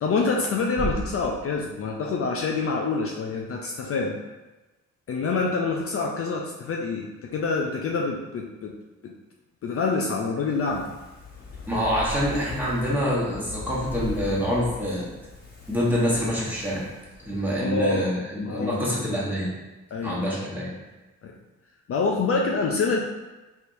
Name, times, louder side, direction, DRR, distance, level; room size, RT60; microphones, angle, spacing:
voice 1, 0.0-4.2 5.1-8.7 9.0-9.1 9.6-10.9 17.6-18.1 18.5-18.8 19.9-20.2 21.2-21.3 21.9-23.0, left 4 dB, 50° left, 0 dB, 0.4 m, -26 dB
Bass drum, 0.8-2.4, right 1 dB, 50° right, 1.2 m, -34 dB
Fire, 10.4-17.8 18.1-18.2, left 2 dB, 35° left, 1.1 m, -39 dB
voice 2, 11.7-15.0 15.7-16.8 17.2-19.5 20.0-20.7, equal, 5° right, -7 dB, 1.2 m, -26 dB
4.4 x 3.4 x 2.6 m, 1.1 s
cardioid pair, 115°, 31 cm